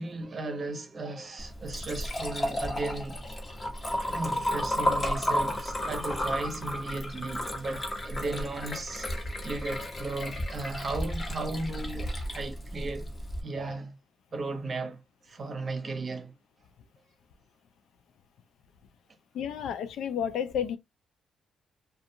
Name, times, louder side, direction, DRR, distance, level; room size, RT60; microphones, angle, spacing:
voice 1, 0.0-3.2 4.1-9.1 9.4-13.1 13.4-13.9 14.3-16.3, right 2 dB, 40° right, 0.9 m, -35 dB
Liquid, 1.4-13.4, left 1 dB, 30° left, 1.1 m, -33 dB
voice 2, 19.3-20.8, left 8 dB, 75° left, 0.4 m, -31 dB
2.4 x 2.3 x 2.7 m
cardioid pair, 90°, 0 cm